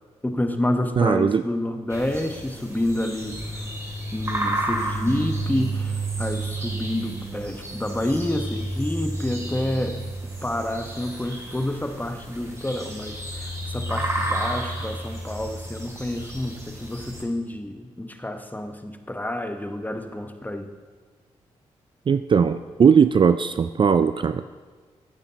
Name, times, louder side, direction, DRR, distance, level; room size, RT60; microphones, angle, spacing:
voice 1, 0.2-3.7 4.1-20.7, left 1 dB, 15° left, 7 dB, 1.0 m, -29 dB
voice 2, 1.0-1.4 22.1-24.4, right 6 dB, 40° right, 11 dB, 0.4 m, -19 dB
sound 1, 1.9-17.2, right 2 dB, 20° right, 2.7 m, -31 dB
11.0 x 8.8 x 2.9 m, 1.5 s
supercardioid pair, 45°, 13 cm